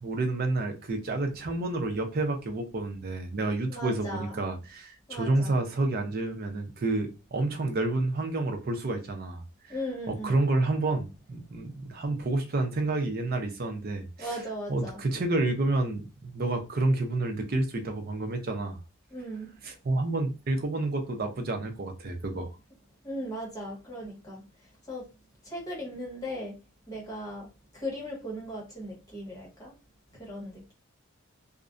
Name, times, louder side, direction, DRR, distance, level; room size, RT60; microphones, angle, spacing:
voice 1, 0.0-9.8 10.1-14.4 14.7-18.8 19.6-22.5, right 2 dB, 45° right, 0.5 m, -29 dB
voice 2, 3.7-4.4 5.1-5.5 9.7-10.3 14.2-15.0 19.1-19.5 23.0-24.4 24.8-25.1 25.4-26.6 26.9-27.5 27.7-29.7 30.2-30.7, equal, 15° left, 1.0 m, -37 dB
2.4 x 2.1 x 2.4 m
head